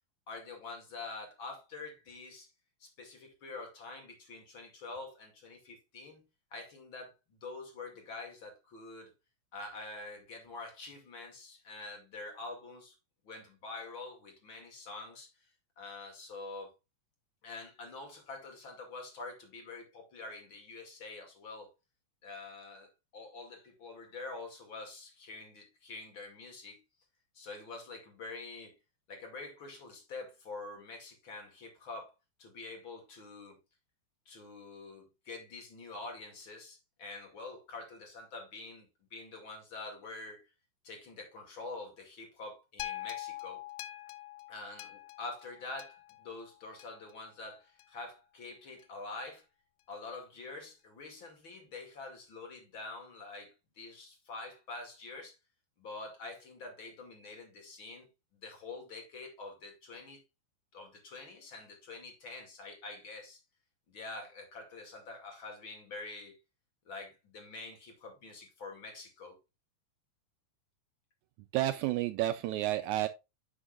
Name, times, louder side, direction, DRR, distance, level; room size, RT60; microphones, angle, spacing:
voice 1, 0.3-2.5 2.8-6.2 6.5-9.1 9.5-12.9 13.2-15.5 15.8-16.7 17.4-21.7 22.2-26.8 27.3-28.8 29.1-32.1 32.4-33.6 34.3-40.4 40.8-43.6 44.5-49.4 49.9-55.4 55.8-58.1 58.3-60.2 60.7-63.4 63.9-66.4 66.9-69.4, left 3 dB, 40° left, 2.7 m, -46 dB
sound 1, 42.8-47.1 47.8-47.9, left 14 dB, 80° left, 2.2 m, -44 dB
voice 2, 71.5-73.1, right 14 dB, 85° right, 1.7 m, -30 dB
9.8 x 6.2 x 2.4 m
omnidirectional pair, 3.9 m